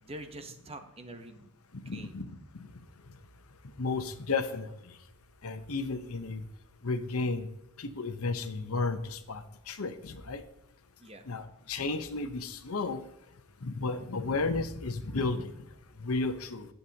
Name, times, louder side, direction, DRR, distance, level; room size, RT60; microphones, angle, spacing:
voice 1, 0.0-1.5 1.8-2.2 11.0-11.3, right 1 dB, 25° right, 7 dB, 0.9 m, -45 dB
voice 2, 1.8-2.4 3.8-4.7 5.4-6.4 6.8-7.5 7.8-10.4 11.3-13.0 13.6-15.5 16.0-16.7, left 3 dB, 75° left, 9 dB, 0.9 m, -33 dB
18.5 x 6.8 x 2.9 m, 0.83 s
head